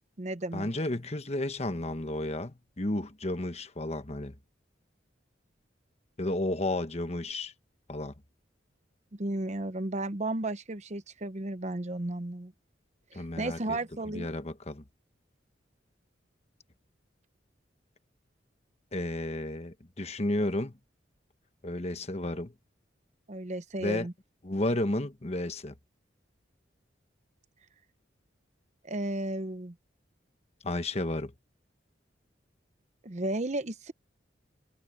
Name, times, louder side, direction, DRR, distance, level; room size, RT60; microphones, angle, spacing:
voice 1, 0.0-0.7 9.1-12.5 13.1-14.3 23.3-24.1 28.8-29.7 33.0-33.9, right 2 dB, 40° right, 0.9 m, -34 dB
voice 2, 0.5-4.3 6.2-7.5 7.9-8.1 13.1-13.8 14.1-14.8 18.9-20.7 21.6-22.5 23.8-24.1 24.4-25.7 30.6-31.3, left 1 dB, 35° left, 1.2 m, -32 dB
head